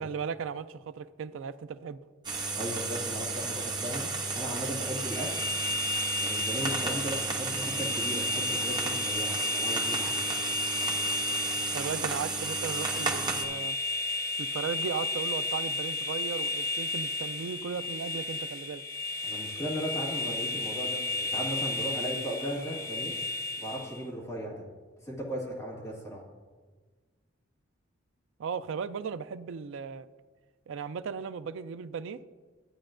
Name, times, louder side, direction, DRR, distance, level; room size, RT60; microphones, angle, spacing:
voice 1, 0.0-2.0 11.7-13.8 14.4-18.8 28.4-30.1 30.7-32.2, right 6 dB, 75° right, 12 dB, 0.3 m, -36 dB
sound 1, 2.2-13.4, right 4 dB, 20° right, 0.8 m, -33 dB
voice 2, 2.5-5.3 6.2-10.2 19.2-23.1 23.6-24.6 25.1-26.2, equal, 15° left, -5 dB, 2.0 m, -36 dB
sound 2, 4.8-24.0, left 3 dB, 45° left, 0.9 m, -33 dB
13.0 x 8.7 x 2.5 m, 1.4 s
head